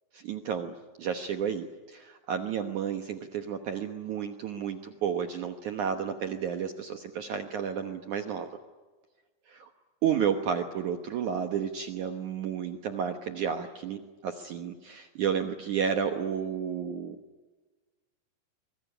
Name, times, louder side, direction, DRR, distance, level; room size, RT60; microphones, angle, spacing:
voice 1, 0.1-8.5 10.0-17.1, right 7 dB, 75° right, 6 dB, 1.8 m, -32 dB
25.5 x 24.0 x 10.0 m, 1.3 s
omnidirectional pair, 5.2 m